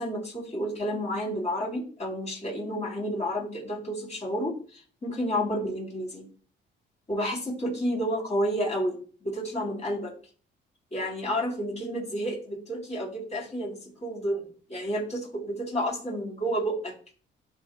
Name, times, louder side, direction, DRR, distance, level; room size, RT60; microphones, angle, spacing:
voice 1, 0.0-6.3 7.1-10.1 10.9-16.9, equal, 35° left, -1 dB, 3.6 m, -30 dB
12.0 x 4.8 x 2.3 m, 0.40 s
cardioid pair, 90°, 20 cm